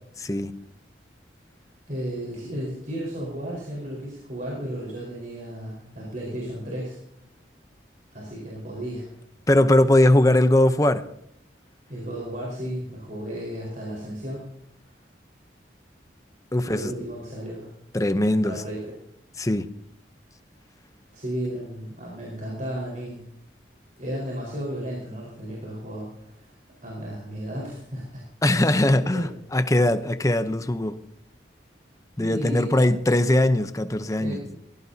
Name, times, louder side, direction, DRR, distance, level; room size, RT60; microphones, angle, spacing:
voice 1, 0.2-0.5 9.5-11.0 16.5-16.9 17.9-18.6 19.4-19.7 28.4-31.0 32.2-34.4, left 1 dB, 15° left, 11 dB, 0.7 m, -20 dB
voice 2, 1.9-7.0 8.1-9.1 11.9-14.5 16.6-17.7 18.4-18.9 21.1-23.2 24.0-26.5 26.8-28.2 29.1-29.3 32.2-32.9 34.2-34.4, equal, 45° right, -4 dB, 4.7 m, -34 dB
21.5 x 16.5 x 2.8 m, 0.70 s
head